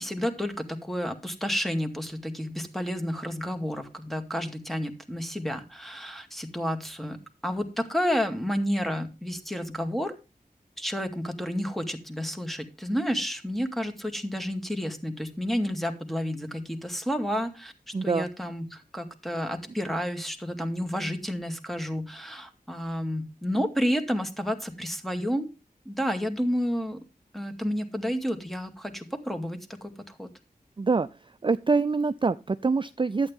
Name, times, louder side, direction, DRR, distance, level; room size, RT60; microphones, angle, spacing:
voice 1, 0.0-7.2 7.4-10.1 10.8-17.7 18.0-25.5 25.9-27.0 27.3-30.3, equal, ahead, 6 dB, 2.1 m, -30 dB
voice 2, 17.9-18.3 30.8-31.1 31.4-33.3, right 4 dB, 30° right, 13 dB, 0.4 m, -25 dB
11.5 x 8.9 x 3.6 m, 0.28 s
wide cardioid pair, 45°, 16 cm